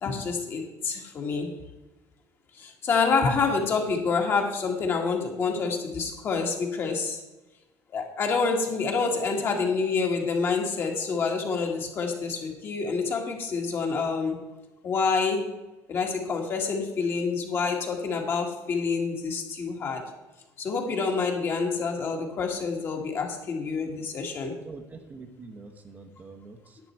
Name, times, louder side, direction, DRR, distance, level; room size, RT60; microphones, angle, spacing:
voice 1, 0.0-1.5 2.5-7.2 7.9-14.4 14.8-15.5 15.9-20.0 20.6-24.5, left 4 dB, 40° left, 2 dB, 1.9 m, -27 dB
voice 2, 24.6-26.8, right 3 dB, 25° right, 5 dB, 1.0 m, -45 dB
10.5 x 8.9 x 4.5 m, 1.1 s
cardioid pair, 155°, 6 cm